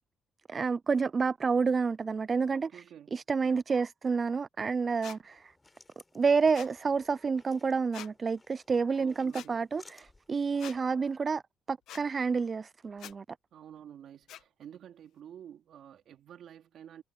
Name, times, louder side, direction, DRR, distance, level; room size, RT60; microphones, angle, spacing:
voice 1, 0.5-2.8 3.1-5.5 6.1-11.4 11.7-13.2, right 5 dB, 35° right, 0.3 m, -29 dB
voice 2, 2.5-3.5 9.0-9.6 13.5-17.0, right 9 dB, 70° right, 3.9 m, -50 dB
sound 1, 5.0-5.2 6.5-6.7 7.9-8.1 9.3-9.5 10.6-10.8 11.9-12.0 13.0-13.1 14.3-14.4, left 12 dB, 80° left, 1.2 m, -45 dB
sound 2, 5.2-10.9, left 2 dB, 20° left, 6.2 m, -60 dB
cardioid pair, 90°, 0 cm